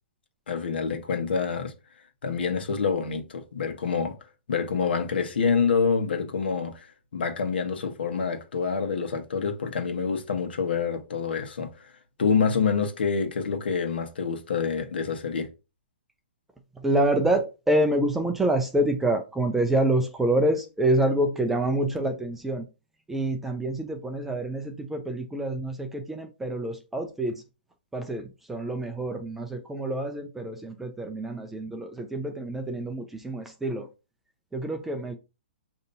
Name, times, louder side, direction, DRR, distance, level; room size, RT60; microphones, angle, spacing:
voice 1, 0.5-1.7 2.2-4.2 4.5-11.9 12.2-15.5, left 5 dB, 75° left, 1.1 m, -27 dB
voice 2, 16.8-22.7 23.1-27.4 27.9-33.9 34.5-35.1, right 1 dB, 5° right, 0.4 m, -27 dB
6.6 x 2.8 x 2.7 m
hypercardioid pair, 160°, 6 cm